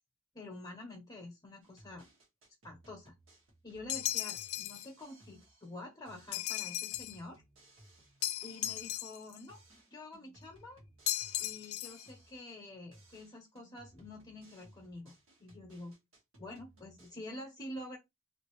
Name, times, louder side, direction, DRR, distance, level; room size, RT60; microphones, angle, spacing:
voice 1, 0.3-2.0 2.6-3.1 3.6-7.4 8.4-9.6 9.9-10.8 11.4-15.1 15.4-15.9 16.4-18.0, left 1 dB, 20° left, 0.8 m, -48 dB
sound 1, 1.6-5.8 6.1-9.2 9.5-12.7 12.9-17.1, right 1 dB, 75° right, 1.5 m, -61 dB
sound 2, 3.9-4.9 6.3-7.2 8.2-9.4 11.1-12.1, left 14 dB, 80° left, 0.4 m, -36 dB
3.1 x 2.6 x 3.0 m
head